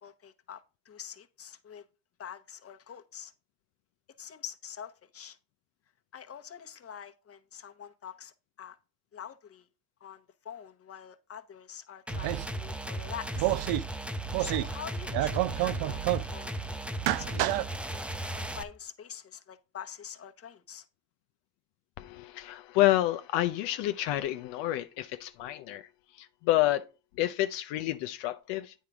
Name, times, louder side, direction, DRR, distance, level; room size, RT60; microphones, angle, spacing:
voice 1, 0.0-1.8 2.2-3.3 4.2-5.4 6.1-8.8 9.1-9.7 10.0-13.6 14.4-16.0 16.3-17.5 17.9-20.9, left 8 dB, 35° left, 1.0 m, -46 dB
sound 1, 12.1-18.6, right 1 dB, 5° right, 0.5 m, -36 dB
sound 2, 12.1-12.6 13.3-13.8 14.3-14.8 15.0-16.3 16.9-17.7, right 15 dB, 60° right, 0.6 m, -29 dB
voice 2, 22.0-25.9 26.1-26.8 27.2-28.7, left 15 dB, 75° left, 0.6 m, -29 dB
8.8 x 3.7 x 4.7 m
supercardioid pair, 75°, 43 cm